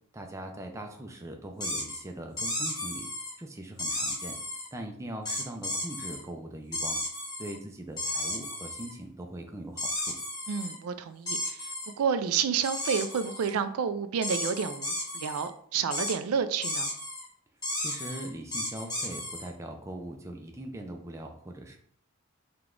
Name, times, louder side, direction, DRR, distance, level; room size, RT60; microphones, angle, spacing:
voice 1, 0.1-3.1 3.4-4.4 4.7-7.0 7.4-10.2 17.7-21.8, right 1 dB, 15° right, 3 dB, 0.4 m, -41 dB
sound 1, 1.6-2.0 2.4-3.3 3.8-4.7 5.2-6.2 6.7-7.6 8.0-8.9 9.8-10.8 11.3-11.9 12.6-13.5 14.2-15.5 15.9-16.1 16.6-17.2 17.6-19.5, left 1 dB, 20° left, 1.2 m, -33 dB
voice 2, 10.5-16.9, right 6 dB, 80° right, 11 dB, 0.3 m, -30 dB
5.0 x 2.3 x 3.6 m, 0.65 s
head